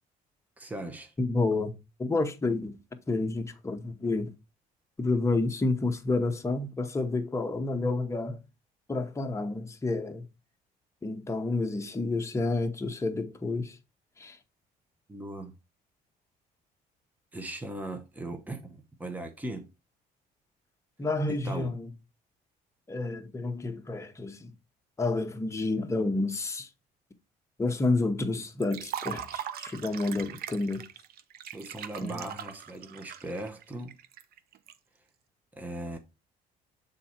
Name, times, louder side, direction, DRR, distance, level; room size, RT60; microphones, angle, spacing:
voice 1, 0.6-1.1 15.1-15.5 17.3-19.7 21.3-21.7 31.5-34.0 35.6-36.0, right 2 dB, 10° right, 0.9 m, -38 dB
voice 2, 1.2-1.7 2.0-2.8 3.1-4.3 5.0-8.4 8.9-10.3 11.0-13.8 14.2-14.4 21.0-21.9 22.9-24.5 25.0-26.7 27.6-30.9 32.0-32.3, left 3 dB, 15° left, 1.0 m, -29 dB
Liquid, 28.6-34.7, right 10 dB, 65° right, 0.6 m, -40 dB
6.9 x 3.8 x 4.3 m
cardioid pair, 110°, 17 cm